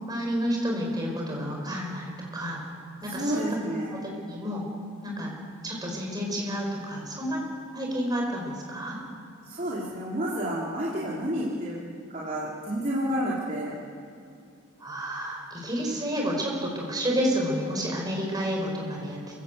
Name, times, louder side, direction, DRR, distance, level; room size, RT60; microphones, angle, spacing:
voice 1, 0.1-2.6 3.0-3.6 3.9-4.7 5.0-5.3 5.6-7.4 7.7-9.0 14.8-19.4, equal, 20° right, -1 dB, 5.9 m, -30 dB
voice 2, 3.1-4.0 9.4-11.7 12.1-13.7, equal, 40° right, -6 dB, 3.2 m, -30 dB
27.5 x 16.0 x 8.1 m, 2.4 s
head